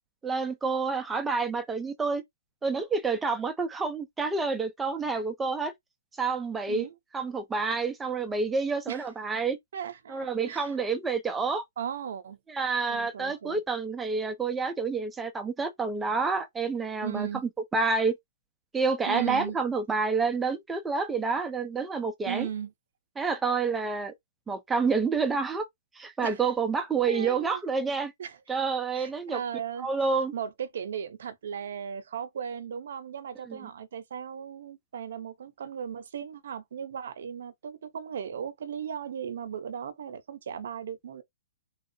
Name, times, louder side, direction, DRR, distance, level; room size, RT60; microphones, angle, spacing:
voice 1, 0.2-2.2 2.6-5.7 6.2-6.9 7.1-9.6 10.1-11.6 12.5-17.3 17.7-18.2 18.7-22.5 23.2-24.1 24.5-25.7 26.0-28.1 28.5-29.4 29.8-30.3 33.5-33.6, right 4 dB, 5° right, 0.4 m, -28 dB
voice 2, 9.7-10.8 11.8-12.4 12.9-13.6 17.0-17.4 19.1-19.6 22.2-22.7 26.2-26.4 27.1-27.6 28.2-28.4 28.9-29.9 30.3-41.2, right 8 dB, 50° right, 0.7 m, -37 dB
3.6 x 2.4 x 2.6 m
hypercardioid pair, 180°, 0 cm